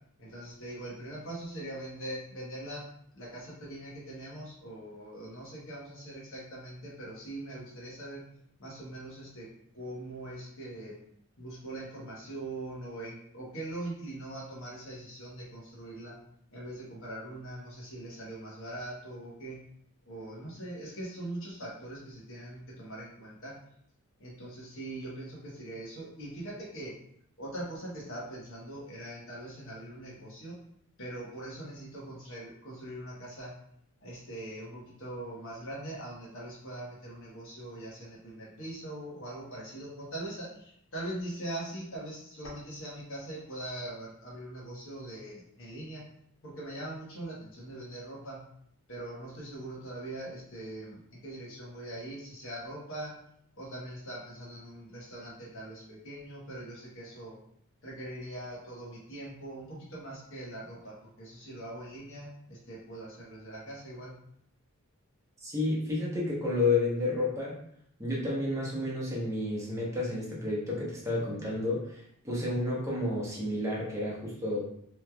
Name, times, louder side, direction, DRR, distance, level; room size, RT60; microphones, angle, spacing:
voice 1, 0.2-2.8 3.1-8.2 8.6-9.5 9.7-11.0 11.4-16.2 16.5-19.6 20.1-23.5 24.2-26.9 27.4-30.6 31.0-33.5 34.0-46.1 46.4-48.4 48.9-53.1 53.6-57.4 57.8-64.1, right 1 dB, 60° left, -4 dB, 1.1 m, -42 dB
voice 2, 65.4-67.6 68.0-74.6, left 2 dB, 15° right, -5 dB, 0.8 m, -31 dB
3.2 x 3.0 x 2.2 m, 0.70 s
head